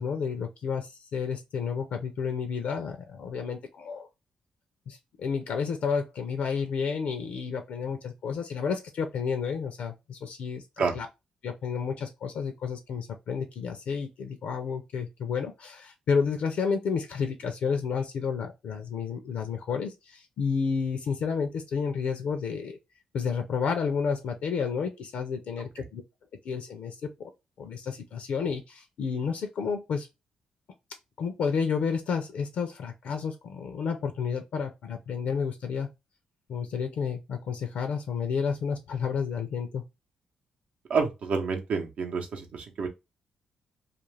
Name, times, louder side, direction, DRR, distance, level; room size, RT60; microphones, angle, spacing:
voice 1, 0.0-4.1 4.9-10.6 10.9-11.1 11.4-22.8 23.1-26.0 26.4-27.3 27.6-30.1 31.2-35.9 36.5-39.8, left 6 dB, 75° left, 0.5 m, -31 dB
voice 2, 40.9-42.9, right 5 dB, 65° right, 0.7 m, -29 dB
2.4 x 2.3 x 3.2 m
cardioid pair, 75°, 2 cm